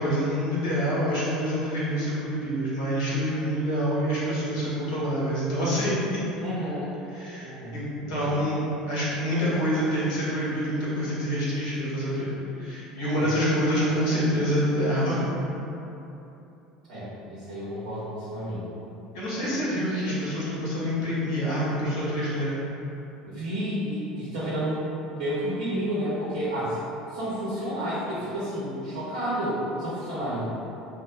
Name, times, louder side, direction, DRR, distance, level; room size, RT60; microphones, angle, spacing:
voice 1, 0.0-6.2 7.1-8.6 8.9-12.3 12.6-15.2 19.1-22.6, equal, 60° left, -8 dB, 1.1 m, -26 dB
voice 2, 6.4-6.9 7.4-7.7 8.1-8.4 13.0-13.3 16.9-18.6 23.3-24.8 25.1-26.8 27.1-30.4, equal, 65° right, -11 dB, 0.8 m, -31 dB
2.8 x 2.2 x 3.9 m, 3.0 s
figure-of-eight pair, 65°, 4 cm